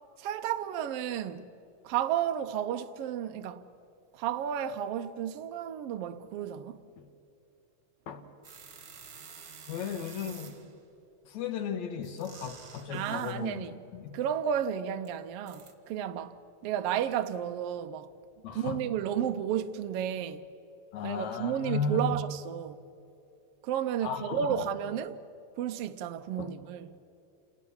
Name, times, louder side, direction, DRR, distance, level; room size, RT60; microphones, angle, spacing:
voice 1, 0.2-1.5 1.8-3.6 4.1-6.8 12.9-13.8 14.1-18.1 18.5-20.4 21.0-22.9 23.6-25.2 25.6-26.9, right 9 dB, 75° right, 1.4 m, -32 dB
sound 1, 8.4-10.8 12.0-13.4 15.0-15.1 15.5-15.7, right 6 dB, 40° right, 1.5 m, -50 dB
voice 2, 9.7-10.6 11.3-13.6 13.9-14.2 18.4-18.8 20.9-22.2 24.0-24.4 26.4-26.5, left 6 dB, 75° left, 2.6 m, -35 dB
28.5 x 19.0 x 7.2 m
omnidirectional pair, 3.4 m